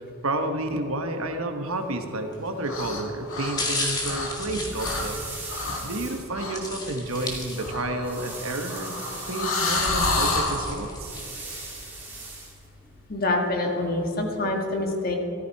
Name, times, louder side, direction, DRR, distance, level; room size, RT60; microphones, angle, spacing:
voice 1, 0.0-5.3 5.8-9.0 9.3-11.1, right 2 dB, 85° right, 6 dB, 1.3 m, -30 dB
sound 1, 2.3-2.6 3.3-5.8 6.5-8.0 8.4-8.5 9.2-11.4 11.9-12.0, left 2 dB, 20° left, 2.0 m, -33 dB
sound 2, 2.6-3.0 3.3-4.5 4.8-5.1 5.5-5.9 6.3-6.6 7.6-10.6, left 3 dB, 75° left, 2.3 m, -29 dB
sound 3, 3.9-13.1, right 2 dB, 10° right, 2.9 m, -41 dB
voice 2, 13.1-15.2, left 2 dB, 45° left, 2 dB, 1.7 m, -26 dB
14.5 x 14.0 x 4.7 m, 2.6 s
head